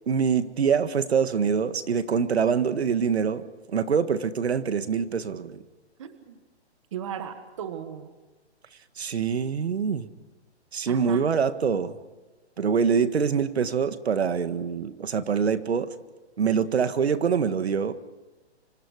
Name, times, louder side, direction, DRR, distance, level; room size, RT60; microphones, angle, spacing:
voice 1, 0.1-3.4 3.7-5.6 9.0-10.1 10.7-11.9 12.6-15.9 16.4-17.9, right 6 dB, 65° right, 12 dB, 1.7 m, -24 dB
voice 2, 6.0-6.4 6.9-8.1 10.9-11.3, right 9 dB, 25° right, 10 dB, 1.4 m, -36 dB
27.5 x 26.0 x 4.9 m, 1.2 s
hypercardioid pair, 175°, 34 cm